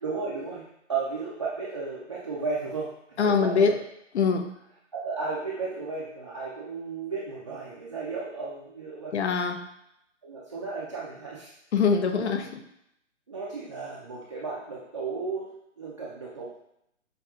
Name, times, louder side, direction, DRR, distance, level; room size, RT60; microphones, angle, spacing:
voice 1, 0.0-3.8 4.9-9.1 10.2-11.5 12.1-12.5 13.3-16.6, right 4 dB, 25° right, -7 dB, 0.3 m, -34 dB
voice 2, 3.2-3.8 4.1-4.5 9.1-9.7 11.7-12.6, left 5 dB, 60° left, 6 dB, 0.6 m, -23 dB
6.0 x 2.6 x 2.3 m, 0.78 s
hypercardioid pair, 140°, 37 cm